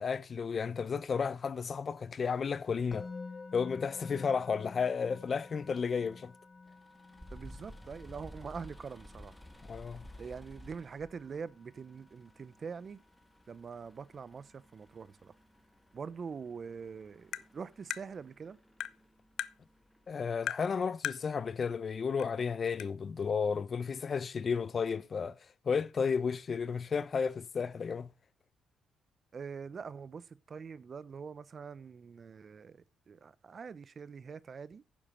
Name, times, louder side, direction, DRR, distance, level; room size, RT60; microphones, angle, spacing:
voice 1, 0.0-3.1 3.5-6.3 9.7-10.0 20.1-25.3 25.6-28.1, left 6 dB, 45° left, 0.7 m, -33 dB
Musical instrument, 2.9-14.0, left 4 dB, 25° left, 1.4 m, -51 dB
sound 1, 6.7-20.1, left 1 dB, 5° left, 1.7 m, -55 dB
voice 2, 7.3-9.4 10.2-13.0 13.5-15.3 15.9-18.6 29.3-34.8, right 6 dB, 45° right, 0.7 m, -44 dB
Tap, 17.3-17.5 17.9-18.0 18.8-19.0 19.4-19.5 20.5-20.7 21.0-21.2 22.2-22.3 22.8-22.9, left 12 dB, 80° left, 0.5 m, -36 dB
10.0 x 7.2 x 4.9 m
cardioid pair, 90°, 0 cm